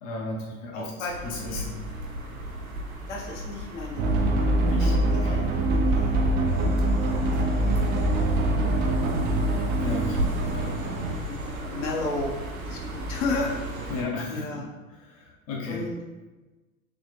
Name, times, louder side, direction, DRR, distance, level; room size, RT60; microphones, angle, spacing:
voice 1, 0.0-0.9 1.2-1.8 4.7-5.5 9.8-10.7 13.9-14.6 15.1-15.8, left 2 dB, 40° left, -2 dB, 0.8 m, -34 dB
voice 2, 0.7-1.6 3.1-4.5 4.8-5.4 5.7-6.1 6.5-6.7 7.3-8.2 8.5-8.9 10.5-11.4 11.7-12.3 12.6-13.5 13.8-13.9 14.3-14.7 15.7-16.0, left 3 dB, 60° left, -2 dB, 1.0 m, -34 dB
sound 1, 1.0-14.0, equal, 90° right, 0.8 m, -35 dB
sound 2, 4.0-11.1, right 1 dB, 25° right, 0.3 m, -24 dB
3.9 x 2.9 x 3.2 m, 1.2 s
figure-of-eight pair, 85°, 41 cm